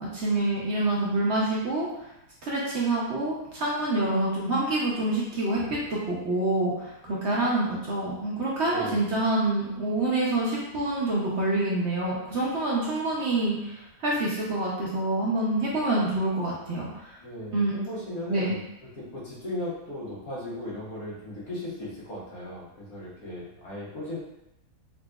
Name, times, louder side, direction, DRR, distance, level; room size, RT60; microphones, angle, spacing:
voice 1, 0.1-1.9 2.4-17.2 17.5-17.7 18.3-18.6, right 2 dB, 55° right, -5 dB, 0.8 m, -27 dB
voice 2, 8.6-9.2 17.2-18.6 18.9-24.2, left 1 dB, 75° left, -8 dB, 1.8 m, -37 dB
4.0 x 2.6 x 2.3 m, 0.86 s
omnidirectional pair, 1.6 m